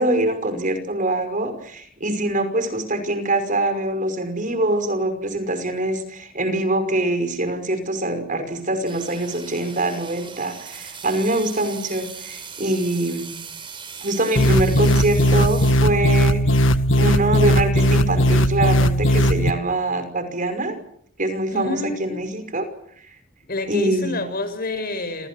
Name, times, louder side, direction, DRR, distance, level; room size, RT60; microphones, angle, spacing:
voice 1, 0.0-13.3 14.0-20.8 21.2-22.7 23.7-24.2, right 2 dB, 45° right, 9 dB, 5.6 m, -24 dB
sound 1, 8.9-15.7, right 6 dB, 25° right, 4.0 m, -38 dB
sound 2, 14.4-19.5, equal, 85° left, 1.6 m, -18 dB
voice 2, 21.5-22.3 23.5-25.3, left 2 dB, 50° left, 10 dB, 6.6 m, -28 dB
30.0 x 28.0 x 6.3 m, 0.63 s
head